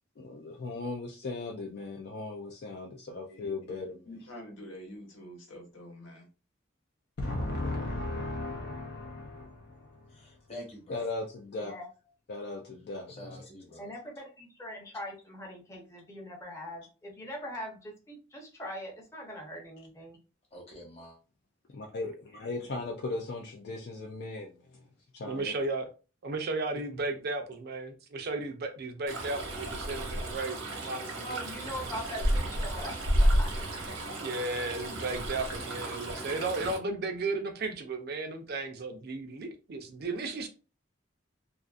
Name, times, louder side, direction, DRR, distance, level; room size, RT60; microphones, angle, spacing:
voice 1, 0.2-4.1 7.2-9.9 10.9-11.7 12.3-13.1 21.7-24.5 25.1-25.5, left 2 dB, 55° left, 0.4 m, -37 dB
voice 2, 3.2-3.7 4.0-6.3, equal, 80° left, 1.0 m, -47 dB
voice 3, 10.1-11.1 13.1-13.9 20.5-21.2, left 1 dB, 30° left, 1.0 m, -47 dB
voice 4, 11.6-11.9 13.8-20.2 31.2-33.7, equal, 15° left, 0.6 m, -42 dB
voice 5, 25.2-25.9 26.2-31.8 34.1-40.5, right 3 dB, 50° right, 0.5 m, -35 dB
Stream, 29.1-36.8, right 1 dB, 80° right, 0.9 m, -31 dB
2.5 x 2.5 x 2.4 m
head